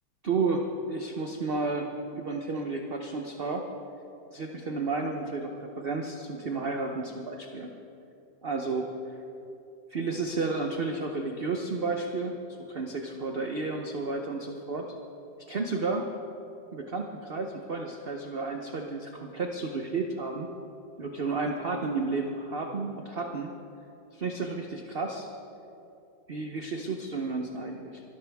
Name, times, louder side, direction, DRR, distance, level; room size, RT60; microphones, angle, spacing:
voice 1, 0.2-3.7 4.3-7.7 8.4-9.2 9.9-12.4 12.7-14.9 15.5-16.1 16.7-20.5 21.0-23.5 24.1-25.3 26.3-28.0, right 3 dB, 45° right, 3 dB, 0.8 m, -32 dB
24.5 x 13.0 x 3.5 m, 2.7 s
omnidirectional pair, 1.9 m